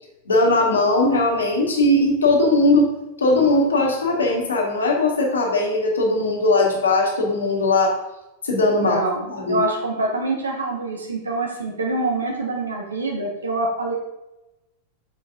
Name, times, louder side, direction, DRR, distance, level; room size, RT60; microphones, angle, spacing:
voice 1, 0.3-2.9 3.2-7.9 8.4-9.0 9.3-9.6, left 2 dB, 70° left, -1 dB, 1.7 m, -19 dB
voice 2, 8.8-13.9, right 2 dB, 75° right, 0 dB, 1.5 m, -25 dB
6.4 x 5.5 x 3.7 m, 0.93 s
figure-of-eight pair, 90°, 0 cm